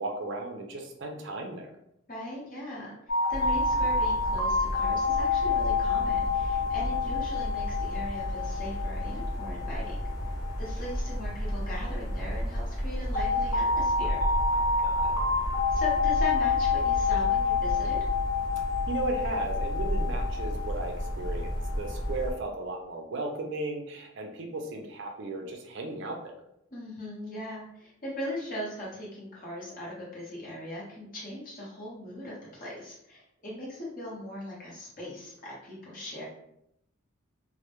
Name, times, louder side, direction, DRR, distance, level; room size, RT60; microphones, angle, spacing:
voice 1, 0.0-1.7 14.8-15.2 18.9-26.2, right 2 dB, 55° right, 3 dB, 0.4 m, -35 dB
voice 2, 2.1-2.9 3.3-10.0 10.6-14.2 15.7-18.0 26.7-36.2, left 1 dB, 40° left, -5 dB, 0.9 m, -39 dB
sound 1, 3.1-11.9 13.1-22.3, left 4 dB, 85° left, 0.7 m, -28 dB
sound 2, 3.3-22.3, equal, 15° left, 0.5 m, -33 dB
2.2 x 2.1 x 2.9 m, 0.78 s
head